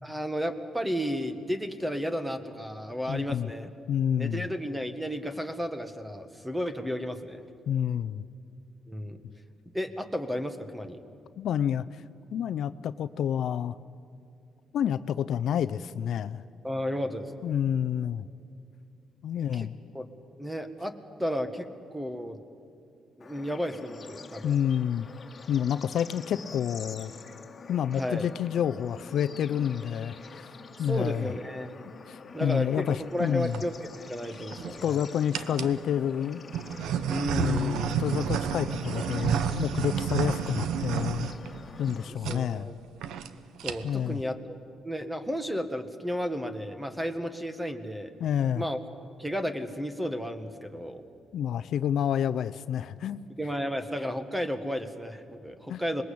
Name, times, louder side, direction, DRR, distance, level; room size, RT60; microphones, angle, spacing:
voice 1, 0.0-3.7 4.2-7.4 8.9-9.2 9.7-11.0 16.6-17.5 19.5-19.7 19.9-20.1 20.4-20.9 21.2-22.4 23.2-24.6 28.0-28.3 30.8-31.7 32.3-33.7 34.1-35.0 37.1-37.9 42.1-42.8 43.6-44.6 44.8-48.1 48.5-48.8 49.2-51.0 53.4-56.0, equal, 5° right, 9 dB, 1.8 m, -33 dB
voice 2, 3.1-3.5 3.9-4.5 7.7-8.2 11.4-12.0 12.3-13.8 14.7-16.4 17.4-18.3 19.2-19.8 24.4-25.1 25.5-27.1 27.7-30.5 30.8-31.3 32.1-33.6 34.8-36.4 37.3-41.3 41.8-42.7 43.8-44.2 48.2-48.6 51.3-53.2 55.7-55.8, left 9 dB, 70° left, 14 dB, 0.6 m, -29 dB
Bird / Insect / Frog, 23.2-42.1, left 4 dB, 35° left, 2.1 m, -46 dB
sound 1, 33.2-33.6 34.3-34.9 35.3-35.8 36.5-41.9 42.2-42.4 42.7-42.8 43.0-43.3 43.6-44.1, right 8 dB, 90° right, 1.0 m, -30 dB
26.0 x 21.0 x 8.6 m, 2.5 s
cardioid pair, 110°, 0 cm